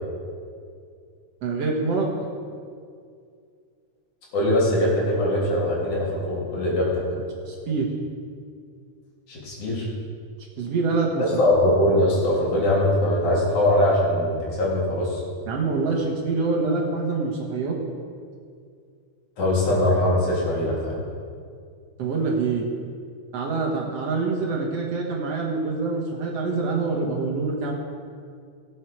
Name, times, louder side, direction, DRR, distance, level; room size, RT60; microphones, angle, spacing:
voice 1, 1.4-2.1 7.5-7.9 10.6-11.2 15.5-17.8 22.0-22.6 23.3-27.7, right 4 dB, 60° right, -1 dB, 2.4 m, -25 dB
voice 2, 4.3-7.0 9.3-9.9 11.4-15.2 19.4-20.9, left 1 dB, 75° left, -5 dB, 4.7 m, -21 dB
18.0 x 8.3 x 4.7 m, 2.3 s
omnidirectional pair, 3.4 m